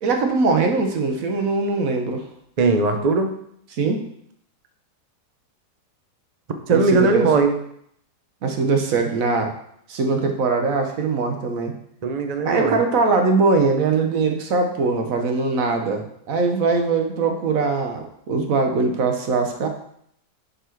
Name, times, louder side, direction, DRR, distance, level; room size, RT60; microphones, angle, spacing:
voice 1, 0.0-2.3 3.7-4.0 6.7-7.5 8.4-9.5 9.9-11.7 12.4-19.7, right 4 dB, 60° right, 4 dB, 1.3 m, -21 dB
voice 2, 2.6-3.3 6.7-7.5 12.0-12.8, right 4 dB, 80° right, 6 dB, 0.3 m, -19 dB
6.3 x 5.4 x 4.5 m, 0.71 s
omnidirectional pair, 1.8 m